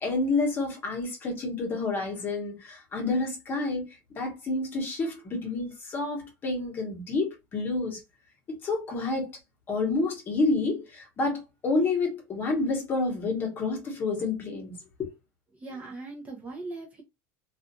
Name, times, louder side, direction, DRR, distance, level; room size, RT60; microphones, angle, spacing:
voice 1, 0.0-3.8 4.1-8.0 8.5-9.4 9.7-15.2, left 3 dB, 25° left, 1.0 m, -29 dB
voice 2, 15.6-17.0, right 3 dB, 20° right, 0.6 m, -39 dB
2.4 x 2.4 x 2.6 m
cardioid pair, 150°, 8 cm